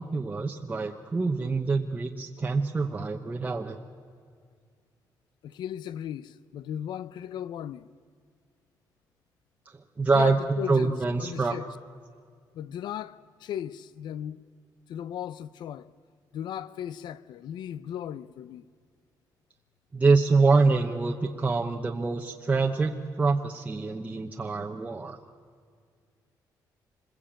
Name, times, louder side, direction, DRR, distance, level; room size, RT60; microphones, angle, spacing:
voice 1, 0.0-3.8 10.0-10.4 10.7-11.6 19.9-25.2, right 4 dB, 20° right, 1.0 m, -25 dB
voice 2, 5.4-7.9 10.1-11.7 12.5-14.4 14.9-15.9 16.3-18.7, left 10 dB, 85° left, 0.7 m, -36 dB
26.5 x 21.5 x 8.9 m
cardioid pair, 160°, 7 cm